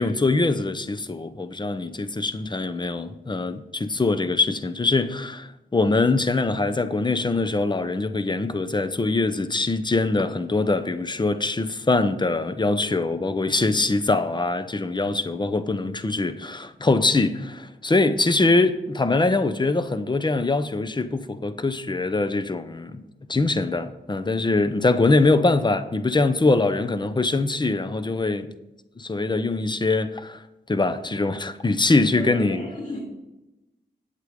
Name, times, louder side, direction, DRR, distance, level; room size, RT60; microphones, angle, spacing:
voice 1, 0.0-23.0 23.3-28.5 29.0-30.4 30.7-32.6, left 3 dB, 25° left, 0.7 m, -23 dB
voice 2, 32.2-33.0, left 1 dB, 45° left, 3.6 m, -33 dB
8.4 x 8.1 x 5.2 m
wide cardioid pair, 85°, 18 cm